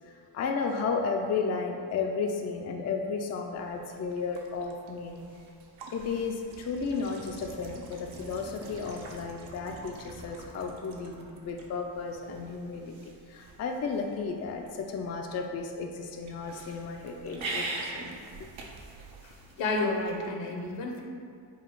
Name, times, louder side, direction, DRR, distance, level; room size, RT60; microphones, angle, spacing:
voice 1, 0.0-5.3 5.9-12.9 13.3-18.5, left 4 dB, 35° left, 3 dB, 0.4 m, -33 dB
sound 1, 3.5-20.3, right 3 dB, 75° right, 0.7 m, -44 dB
voice 2, 19.6-21.0, left 2 dB, 65° left, 1 dB, 0.8 m, -30 dB
4.0 x 2.3 x 4.5 m, 2.3 s
supercardioid pair, 60°, 48 cm